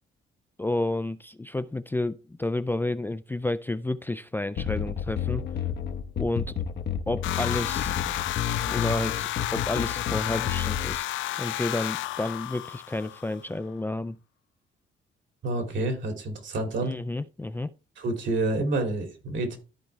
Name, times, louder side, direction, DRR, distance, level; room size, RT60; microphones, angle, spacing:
voice 1, 0.6-5.4 6.2-6.6 7.1-7.9 8.7-11.1 11.4-14.2 16.8-17.7, left 2 dB, 10° left, 0.4 m, -30 dB
sound 1, 4.6-11.0, left 8 dB, 55° left, 0.9 m, -31 dB
sound 2, 7.2-13.4, left 14 dB, 75° left, 0.5 m, -31 dB
voice 2, 15.4-16.9 18.0-19.6, right 2 dB, 70° right, 2.4 m, -28 dB
13.5 x 4.5 x 3.2 m
cardioid pair, 90°, 20 cm